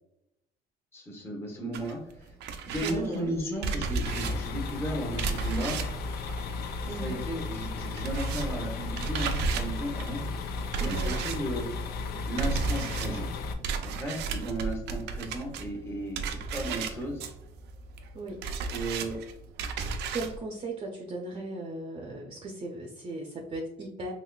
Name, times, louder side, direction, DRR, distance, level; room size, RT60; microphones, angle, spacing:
voice 1, 0.9-2.3 2.6-5.8 7.0-10.2 10.8-11.7 12.2-13.3 13.8-16.2 16.5-17.2 18.7-19.2, right 1 dB, 15° left, -1 dB, 1.0 m, -35 dB
sound 1, 1.7-7.3 7.5-20.4, right 5 dB, 80° right, 0.5 m, -34 dB
voice 2, 2.8-3.3 6.9-7.2 10.8-11.2 18.1-18.4 20.1-24.1, right 2 dB, 30° right, 0 dB, 0.6 m, -37 dB
sound 2, 4.1-13.5, left 3 dB, 70° left, 0.5 m, -35 dB
3.9 x 3.0 x 2.3 m, 0.84 s
cardioid pair, 110°, 17 cm